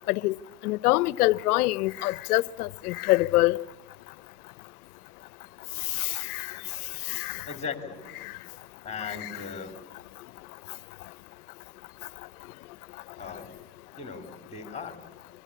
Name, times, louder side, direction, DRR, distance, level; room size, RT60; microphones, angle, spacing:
voice 1, 0.6-3.6 6.0-6.5 7.1-7.3 9.2-9.3, left 19 dB, 70° left, 0.8 m, -25 dB
voice 2, 7.4-8.0 8.8-9.8 13.2-13.6 14.0-15.0, left 5 dB, 15° left, 3.2 m, -38 dB
25.5 x 23.0 x 8.4 m
supercardioid pair, 135°, 46 cm